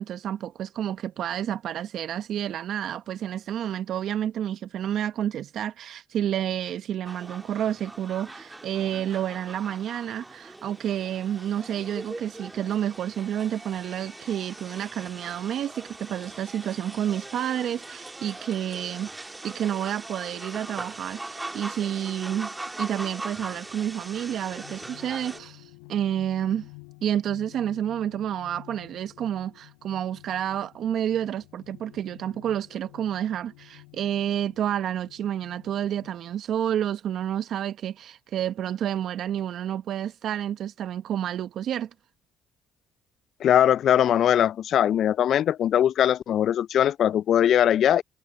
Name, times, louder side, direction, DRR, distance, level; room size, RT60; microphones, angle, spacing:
voice 1, 0.0-19.1 19.4-26.7 27.0-41.9, right 10 dB, 65° right, 0.8 m, -30 dB
sound 1, 7.0-25.4, right 2 dB, 20° right, 1.9 m, -41 dB
sound 2, 23.4-36.2, left 37 dB, 90° left, 7.3 m, -51 dB
voice 2, 43.4-48.0, left 10 dB, 65° left, 0.3 m, -21 dB
hypercardioid pair, 55°, 0 cm